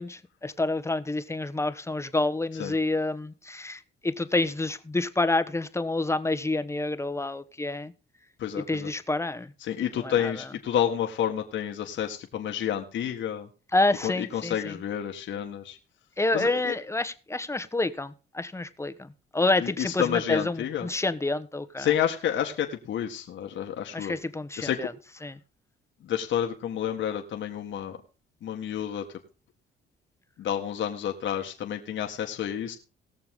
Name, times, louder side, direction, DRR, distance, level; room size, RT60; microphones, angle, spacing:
voice 1, 0.0-7.9 8.5-9.5 10.0-10.5 13.7-14.8 16.2-21.9 23.9-24.9 25.2-25.4, left 2 dB, 15° left, 1.1 m, -28 dB
voice 2, 8.4-8.9 9.6-13.5 14.0-15.8 16.3-16.8 19.6-20.9 21.8-24.1 24.6-24.9 26.0-28.0 28.4-29.1 30.4-32.8, left 10 dB, 70° left, 1.8 m, -29 dB
19.5 x 6.9 x 3.7 m
cardioid pair, 90°, 20 cm